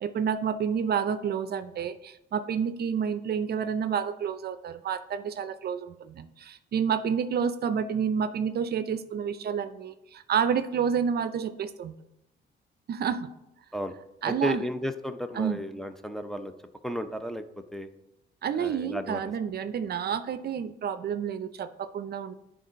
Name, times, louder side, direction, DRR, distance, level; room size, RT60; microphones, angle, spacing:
voice 1, 0.0-11.9 12.9-13.3 14.2-14.6 15.4-15.6 18.4-22.3, right 7 dB, 55° right, 12 dB, 0.5 m, -29 dB
voice 2, 14.2-16.5 16.8-17.4 17.7-17.9 18.5-19.2, equal, ahead, 6 dB, 0.5 m, -33 dB
9.3 x 3.8 x 5.1 m, 0.87 s
cardioid pair, 90°, 20 cm